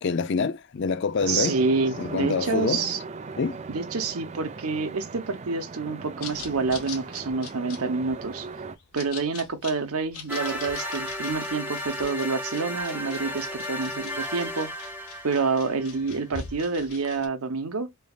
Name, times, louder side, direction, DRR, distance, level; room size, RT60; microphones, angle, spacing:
voice 1, 0.0-1.6 2.0-2.8 3.4-3.6, left 5 dB, 55° left, 0.4 m, -26 dB
sound 1, 1.2-8.8, right 4 dB, 30° right, 0.4 m, -39 dB
voice 2, 1.3-3.0 3.7-8.5 8.9-14.7 15.2-17.9, right 4 dB, 80° right, 0.8 m, -28 dB
sound 2, 6.2-17.3, left 6 dB, 85° left, 1.2 m, -43 dB
sound 3, 10.3-16.2, left 1 dB, 10° right, 0.9 m, -34 dB
4.0 x 3.4 x 2.3 m
head